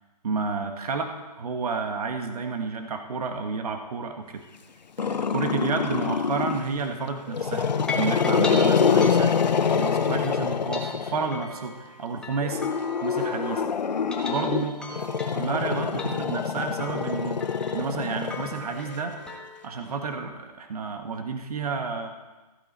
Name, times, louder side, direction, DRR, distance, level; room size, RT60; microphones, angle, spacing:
voice 1, 0.2-1.1 1.4-4.4 5.0-7.7 7.9-9.3 9.7-12.6 13.0-13.6 14.3-14.9 15.3-19.1 19.6-22.1, right 4 dB, 60° right, 5 dB, 1.4 m, -30 dB
Growling, 5.0-6.7 7.3-11.4 12.4-18.9, left 6 dB, 85° left, 0.7 m, -25 dB
sound 1, 7.6-13.6 13.9-19.7, left 2 dB, 5° left, 0.8 m, -39 dB
14.0 x 8.9 x 4.3 m, 1.2 s
hypercardioid pair, 150°, 21 cm